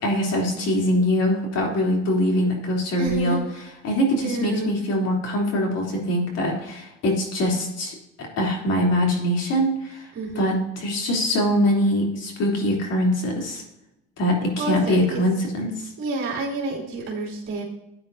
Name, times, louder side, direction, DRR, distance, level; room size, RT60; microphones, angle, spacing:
voice 1, 0.0-3.4 3.8-10.1 10.3-13.6 14.2-15.9, equal, 60° left, -1 dB, 3.4 m, -23 dB
voice 2, 3.0-3.4 4.2-4.7 10.1-10.6 14.6-15.2 16.0-17.6, right 3 dB, 45° right, -4 dB, 3.1 m, -29 dB
14.0 x 8.9 x 2.8 m, 0.90 s
cardioid pair, 120°, 29 cm